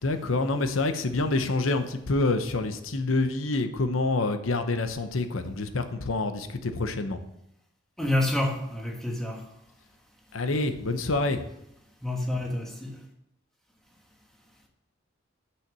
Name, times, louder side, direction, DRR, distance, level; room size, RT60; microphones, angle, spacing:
voice 1, 0.0-7.2 10.3-11.4, left 2 dB, 90° left, 0.9 m, -27 dB
voice 2, 8.0-9.4 12.0-13.0, left 1 dB, ahead, 1.3 m, -28 dB
6.4 x 5.9 x 7.3 m
head